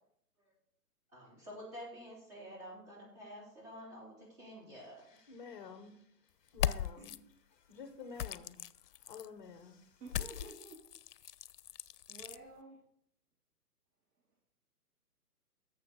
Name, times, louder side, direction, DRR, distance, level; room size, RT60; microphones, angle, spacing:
voice 1, 1.1-5.0 7.0-7.1, equal, 25° right, 4.0 m, -49 dB
voice 2, 4.7-10.0, left 5 dB, 30° left, 0.7 m, -52 dB
sound 1, 6.5-7.2 8.2-9.3 10.1-12.4, left 11 dB, 75° left, 0.5 m, -39 dB
voice 3, 10.0-10.9 12.1-12.8, right 2 dB, 70° right, 2.4 m, -51 dB
11.5 x 7.3 x 4.0 m
hypercardioid pair, 155°, 48 cm